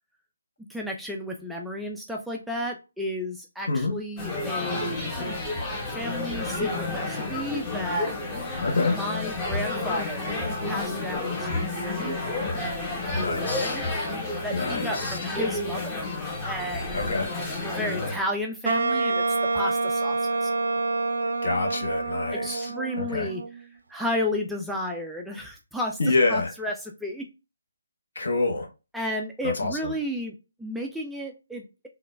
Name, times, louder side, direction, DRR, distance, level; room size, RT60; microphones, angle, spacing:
voice 1, 0.7-5.0 5.9-8.1 8.9-10.3 10.7-12.2 12.6-13.8 14.4-16.1 16.4-17.0 17.6-19.2 19.5-20.5 22.3-23.6 23.9-27.2 28.9-30.3 30.6-31.6, equal, ahead, 0.4 m, -33 dB
sound 1, 4.2-18.2, left 2 dB, 15° left, 0.8 m, -30 dB
voice 2, 8.6-8.9 13.2-13.8 14.5-15.2 16.9-17.3 21.4-22.7 23.0-23.3 26.0-26.5 28.2-28.7 29.4-29.9, left 3 dB, 60° left, 0.9 m, -26 dB
Wind instrument woodwind instrument, 18.6-23.7, right 3 dB, 65° right, 0.5 m, -27 dB
3.7 x 2.2 x 2.2 m
figure-of-eight pair, 145°, 0 cm